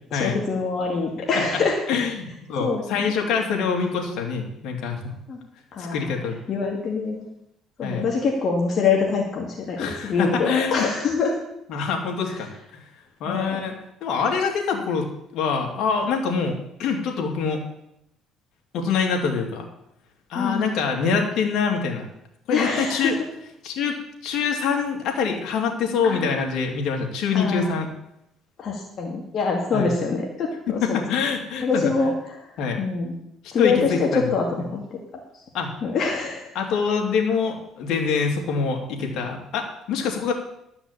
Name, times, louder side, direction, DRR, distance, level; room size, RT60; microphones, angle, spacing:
voice 1, 0.1-1.8 2.6-3.0 5.3-5.4 5.7-6.1 6.5-7.3 7.8-11.3 12.3-12.4 13.3-13.6 14.7-14.9 20.3-20.6 22.5-23.1 26.0-26.3 27.3-27.7 28.6-31.1 31.6-33.1 33.5-35.4 35.8-36.5, left 4 dB, 50° left, -1 dB, 2.2 m, -25 dB
voice 2, 1.9-5.0 5.8-6.4 7.8-8.1 9.8-10.9 11.7-12.8 13.2-13.7 14.0-15.1 15.3-17.6 18.7-19.6 20.3-22.0 22.5-23.2 23.6-24.0 24.2-27.9 29.7-29.9 30.7-31.9 32.6-32.8 33.6-34.2 35.5-35.7 36.5-40.3, left 5 dB, 70° left, 1 dB, 2.9 m, -25 dB
12.5 x 6.0 x 8.4 m, 0.80 s
cardioid pair, 110°, 0 cm